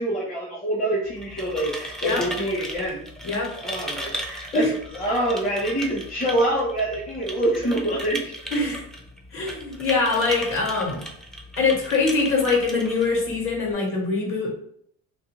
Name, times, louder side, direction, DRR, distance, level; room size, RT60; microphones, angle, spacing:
voice 1, 0.0-3.0 3.6-8.3, right 1 dB, 25° left, -4 dB, 0.8 m, -26 dB
sound 1, 1.0-13.7, equal, ahead, 0.4 m, -37 dB
voice 2, 3.2-3.6 4.5-4.7 8.5-8.8 9.3-11.0 11.6-14.5, left 3 dB, 45° left, -1 dB, 1.2 m, -23 dB
2.5 x 2.2 x 3.0 m, 0.65 s
supercardioid pair, 95°, 30 cm